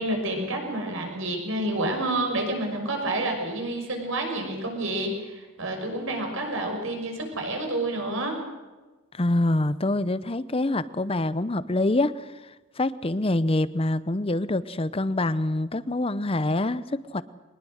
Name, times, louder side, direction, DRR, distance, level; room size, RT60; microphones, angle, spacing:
voice 1, 0.0-8.3, right 1 dB, 60° right, 3 dB, 6.0 m, -29 dB
voice 2, 9.1-12.3 12.8-17.2, left 2 dB, 25° left, 15 dB, 0.7 m, -25 dB
23.0 x 20.0 x 6.5 m, 1.2 s
head